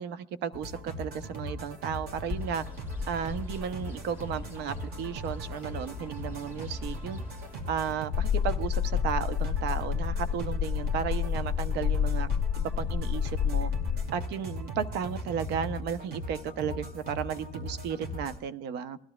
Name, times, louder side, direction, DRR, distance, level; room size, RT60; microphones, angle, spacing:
voice 1, 0.0-2.6 3.1-7.2 7.7-12.3 12.6-13.7 14.1-19.0, right 8 dB, 85° right, 0.8 m, -34 dB
sound 1, 0.5-18.4, equal, 65° right, 2.6 m, -39 dB
Bird, 2.1-8.0, left 4 dB, 15° right, 1.8 m, -43 dB
sound 2, 8.1-14.1, left 8 dB, 45° left, 0.6 m, -29 dB
20.0 x 13.0 x 2.3 m
cardioid pair, 110°, 17 cm